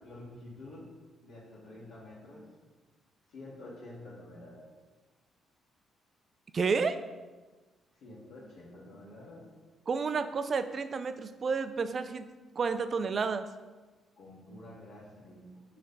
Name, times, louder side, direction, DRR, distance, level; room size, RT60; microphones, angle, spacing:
voice 1, 0.0-0.9 1.2-2.5 3.3-4.7 7.9-9.5 14.2-15.8, left 1 dB, 80° left, -6 dB, 1.5 m, -49 dB
voice 2, 6.5-7.0 9.9-12.3 12.6-13.5, right 5 dB, 45° right, 10 dB, 0.4 m, -30 dB
6.4 x 3.3 x 5.4 m, 1.3 s
cardioid pair, 90°, 0 cm